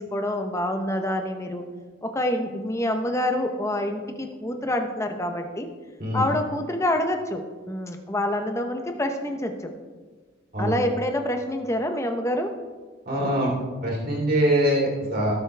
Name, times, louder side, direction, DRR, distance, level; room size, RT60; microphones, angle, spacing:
voice 1, 0.0-1.6 2.0-5.7 6.1-9.7 10.6-12.5, left 1 dB, 15° left, 5 dB, 0.9 m, -27 dB
voice 2, 13.1-13.5 13.8-15.3, right 1 dB, 50° right, -3 dB, 3.2 m, -23 dB
18.0 x 7.8 x 3.4 m, 1.4 s
head